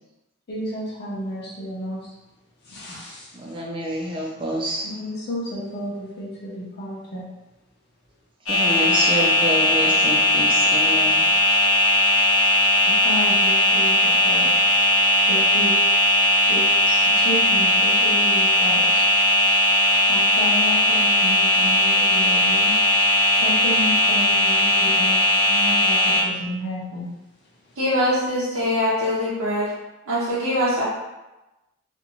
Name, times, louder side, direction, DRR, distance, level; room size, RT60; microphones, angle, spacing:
voice 1, 0.5-2.1 2.6-3.6 5.0-7.3 12.8-14.8 15.3-15.7 16.5-19.0 20.1-22.7 23.4-27.1, left 1 dB, 50° left, -5 dB, 0.6 m, -32 dB
voice 2, 3.3-4.9 8.5-11.3, right 1 dB, 25° right, -2 dB, 0.4 m, -27 dB
sound 1, 8.5-26.2, left 1 dB, 75° left, 0.9 m, -18 dB
voice 3, 27.8-29.7 30.1-30.8, left 1 dB, 90° right, -10 dB, 0.7 m, -23 dB
2.5 x 2.2 x 2.9 m, 1.0 s
head